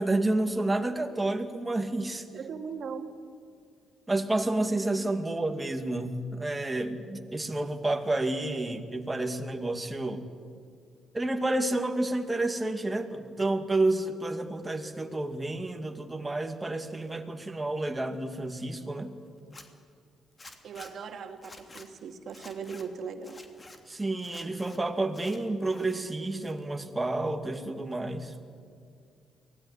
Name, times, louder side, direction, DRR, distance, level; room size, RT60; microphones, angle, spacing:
voice 1, 0.0-2.3 4.1-10.2 11.1-19.1 23.9-28.3, right 2 dB, 15° right, 5 dB, 2.4 m, -30 dB
voice 2, 2.3-3.2 20.6-23.4, right 6 dB, 60° right, 6 dB, 2.4 m, -39 dB
Zipper (clothing), 19.4-19.7 20.4-20.9 21.4-21.9 22.3-22.8 23.2-23.8 24.2-24.8 25.1-25.9 26.3-26.9, left 2 dB, 30° left, 3.0 m, -49 dB
23.5 x 17.5 x 10.0 m, 2.3 s
cardioid pair, 90°, 0 cm